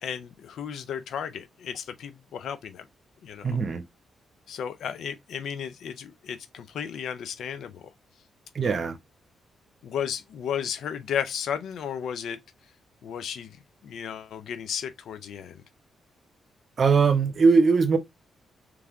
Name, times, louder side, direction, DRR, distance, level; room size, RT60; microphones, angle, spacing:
voice 1, 0.0-2.9 3.2-3.6 4.5-7.9 8.6-8.8 9.8-12.4 13.0-15.6, left 8 dB, 75° left, 0.5 m, -34 dB
voice 2, 3.4-3.8 8.5-9.0 16.8-18.0, right 5 dB, 50° right, 0.8 m, -20 dB
3.5 x 3.3 x 3.6 m
supercardioid pair, 65°, 0 cm